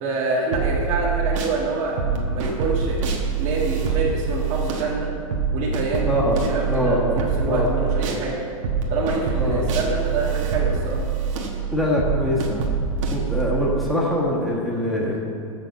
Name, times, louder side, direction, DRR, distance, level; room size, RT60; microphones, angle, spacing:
voice 1, 0.0-5.1 5.5-8.4 8.9-11.0 13.7-13.8, right 3 dB, 40° right, -5 dB, 1.5 m, -26 dB
sound 1, 0.5-1.6 2.0-8.2 8.6-13.8, right 5 dB, 60° right, 1.4 m, -25 dB
voice 2, 6.1-6.4 6.7-7.2 7.4-7.7 9.4-9.6 11.7-12.6 13.1-15.2, left 1 dB, ahead, -6 dB, 1.3 m, -23 dB
6.5 x 6.3 x 7.1 m, 2.5 s
hypercardioid pair, 135°, 18 cm